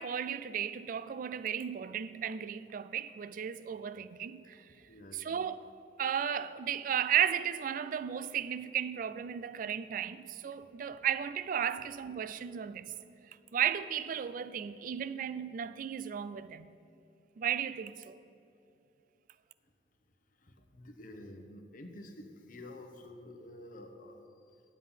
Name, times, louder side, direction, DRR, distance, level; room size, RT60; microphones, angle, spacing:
voice 1, 0.0-4.6 5.1-5.7 6.0-12.9 13.5-16.7 17.4-18.2, right 9 dB, 50° right, 0.3 m, -34 dB
voice 2, 4.9-5.4 10.6-11.0 20.4-24.6, left 1 dB, 50° left, 0.9 m, -50 dB
9.7 x 7.3 x 5.6 m
head